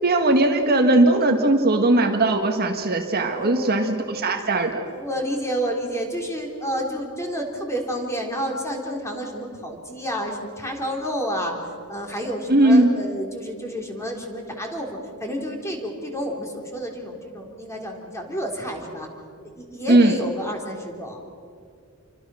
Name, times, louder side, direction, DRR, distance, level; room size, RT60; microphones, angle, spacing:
voice 1, 0.0-4.9 12.5-12.9 19.9-20.2, right 2 dB, 45° right, 4 dB, 1.7 m, -19 dB
voice 2, 3.2-3.9 4.8-11.6 11.9-19.1 19.6-21.2, equal, 15° left, 1 dB, 3.6 m, -30 dB
28.5 x 24.5 x 6.4 m, 2.3 s
head